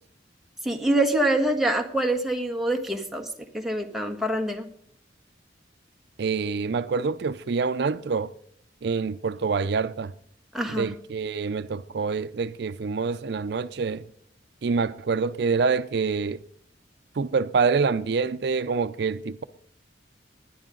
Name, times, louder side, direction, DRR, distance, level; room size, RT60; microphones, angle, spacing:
voice 1, 0.6-3.3 3.5-4.7 10.5-10.9, right 1 dB, ahead, 1.4 m, -25 dB
voice 2, 6.2-8.3 8.8-10.1 10.7-14.0 14.6-16.4 17.2-19.4, right 5 dB, 65° right, 0.4 m, -26 dB
19.5 x 11.0 x 3.8 m
head